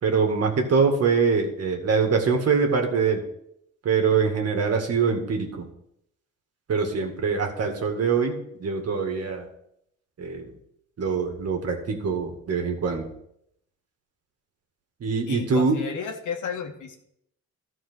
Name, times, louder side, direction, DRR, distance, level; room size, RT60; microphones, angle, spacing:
voice 1, 0.0-3.2 3.8-5.7 6.7-9.5 10.2-10.5 11.0-13.1 15.0-15.8, right 5 dB, 55° right, 3 dB, 2.2 m, -24 dB
voice 2, 15.3-17.0, left 6 dB, 75° left, 3 dB, 1.8 m, -33 dB
13.0 x 4.6 x 6.3 m, 0.75 s
cardioid pair, 90°, 30 cm